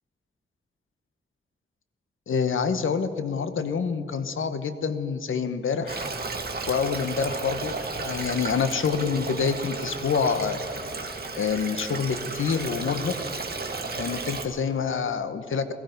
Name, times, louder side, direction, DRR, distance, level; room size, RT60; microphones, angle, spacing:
voice 1, 2.3-6.1 6.7-10.6 11.4-13.1 14.0-15.7, left 6 dB, 75° left, 11 dB, 1.0 m, -27 dB
Stream, 5.9-14.5, right 3 dB, 50° right, 1.8 m, -33 dB
17.5 x 14.5 x 5.3 m, 2.8 s
cardioid pair, 75°, 21 cm